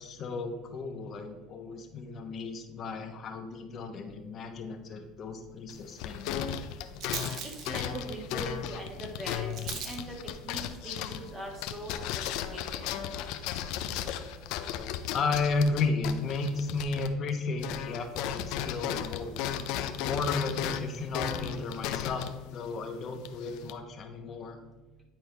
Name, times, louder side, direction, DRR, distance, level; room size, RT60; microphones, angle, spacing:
voice 1, 0.0-6.5 15.1-19.3 20.0-22.3 22.5-24.6, left 3 dB, 40° left, 5 dB, 1.0 m, -33 dB
Rattle, 4.0-13.9, right 6 dB, 55° right, 0.9 m, -46 dB
sound 1, 5.7-17.3 17.6-23.7, left 9 dB, 70° left, 0.5 m, -35 dB
voice 2, 7.4-10.1 10.4-12.8, right 1 dB, 20° right, -1 dB, 1.6 m, -41 dB
9.3 x 4.4 x 3.4 m, 1.1 s
supercardioid pair, 115°, 0 cm